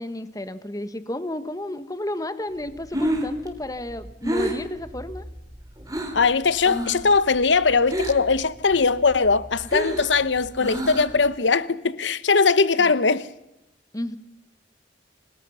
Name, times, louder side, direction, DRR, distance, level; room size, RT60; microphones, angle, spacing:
voice 1, 0.0-5.3 12.8-12.9 13.9-14.2, left 1 dB, 20° left, 1.3 m, -32 dB
Breathing, 2.7-6.3 6.6-7.1 7.3-8.4 8.7-11.3, right 1 dB, 20° right, 3.1 m, -29 dB
voice 2, 6.1-13.3, left 4 dB, 80° left, 1.0 m, -20 dB
28.0 x 20.0 x 5.7 m
head